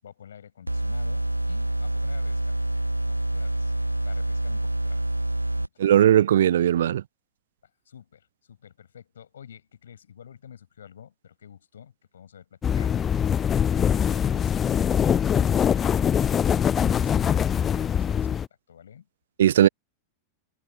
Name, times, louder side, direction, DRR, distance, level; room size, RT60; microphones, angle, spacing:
voice 1, 0.0-2.6 3.1-3.7 4.1-5.2 5.5-5.9 7.6-13.1 13.7-19.1, left 8 dB, 65° left, 7.3 m, -48 dB
sound 1, 0.7-5.7, right 1 dB, 85° right, 1.3 m, -27 dB
voice 2, 5.8-7.0 19.4-19.7, right 11 dB, 60° right, 0.7 m, -18 dB
sound 2, 12.6-18.5, left 8 dB, 25° left, 0.6 m, -23 dB
figure-of-eight pair, 90°, 0 cm